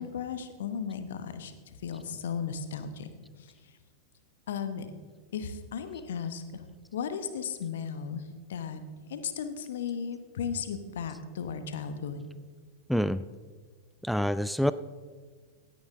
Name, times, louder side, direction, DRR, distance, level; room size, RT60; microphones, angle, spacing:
voice 1, 0.0-3.1 4.5-4.9 5.3-6.4 6.9-8.2 8.5-8.8 9.1-12.3, left 7 dB, 60° left, 10 dB, 1.0 m, -35 dB
voice 2, 12.9-13.2 14.0-14.7, equal, ahead, 15 dB, 0.3 m, -26 dB
16.5 x 9.4 x 3.7 m, 1.5 s
figure-of-eight pair, 90°, 0 cm